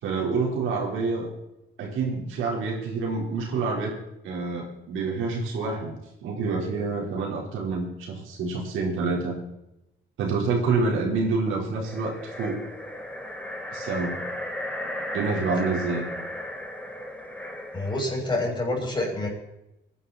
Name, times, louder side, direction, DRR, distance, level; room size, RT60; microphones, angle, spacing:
voice 1, 0.0-1.3 1.8-3.9 4.2-9.3 10.2-12.6 13.7-14.2 15.1-16.1, right 4 dB, 85° right, -2 dB, 4.5 m, -27 dB
sound 1, 11.7-18.2, left 1 dB, 10° left, 4.5 m, -35 dB
voice 2, 17.7-19.3, left 2 dB, 25° left, -2 dB, 6.9 m, -27 dB
22.0 x 11.0 x 4.3 m, 0.90 s
cardioid pair, 90°, 20 cm